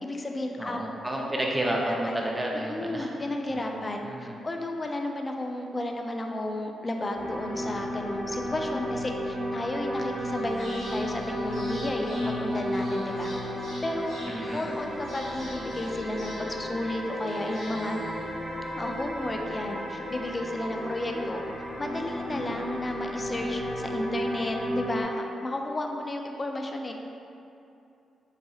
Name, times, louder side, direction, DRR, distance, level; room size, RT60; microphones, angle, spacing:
voice 1, 0.0-0.8 1.2-1.3 1.8-2.2 2.7-13.3 13.8-14.2 14.5-18.0 18.8-21.4 21.8-26.9, left 1 dB, 30° left, 3 dB, 0.4 m, -33 dB
voice 2, 0.6-3.1 3.5-4.3 14.3-14.7, right 1 dB, 20° right, -1 dB, 0.5 m, -31 dB
sound 1, 7.1-25.0, equal, 35° right, 1.1 m, -33 dB
sound 2, 10.0-18.9, equal, 75° right, 1.5 m, -48 dB
4.0 x 2.6 x 2.3 m, 2.7 s
supercardioid pair, 55°, 0 cm